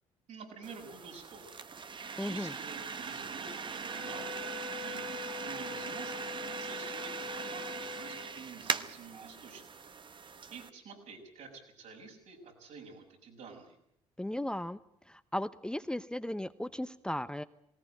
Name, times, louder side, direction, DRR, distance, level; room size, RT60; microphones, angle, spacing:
voice 1, 0.3-1.6 2.2-4.5 4.7-9.7 10.2-13.8, right 5 dB, 70° right, 1 dB, 6.2 m, -49 dB
sound 1, 0.6-10.7, right 5 dB, 35° right, 1.1 m, -40 dB
voice 2, 2.2-2.5 14.2-14.8 15.1-17.4, left 1 dB, 5° left, 11 dB, 0.8 m, -36 dB
Wind instrument woodwind instrument, 3.9-8.4, left 4 dB, 55° right, 4.2 m, -44 dB
19.0 x 18.0 x 9.0 m, 0.76 s
hypercardioid pair, 60°, 13 cm